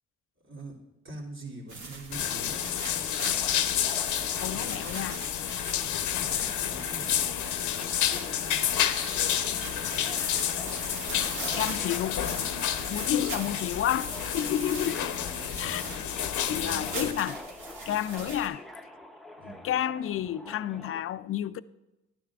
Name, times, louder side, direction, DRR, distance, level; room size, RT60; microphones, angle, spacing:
voice 1, 0.4-0.8 1.0-2.7 4.5-5.1 6.2-7.2 9.4-10.2 13.1-13.3 15.2-15.8 16.5-17.1 19.4-19.6, right 2 dB, 40° right, 2.7 m, -44 dB
sound 1, 1.7-18.5, right 3 dB, 75° right, 2.0 m, -42 dB
sound 2, 2.1-17.1, left 10 dB, 75° left, 0.7 m, -30 dB
Subway metro underground, 2.2-21.0, left 1 dB, ahead, 0.7 m, -48 dB
voice 2, 4.4-5.3 11.5-12.2 12.9-15.1 15.6-15.8 16.5-17.4 17.9-18.6 19.6-21.6, left 11 dB, 50° left, 0.4 m, -30 dB
12.5 x 10.0 x 2.4 m
cardioid pair, 90°, 30 cm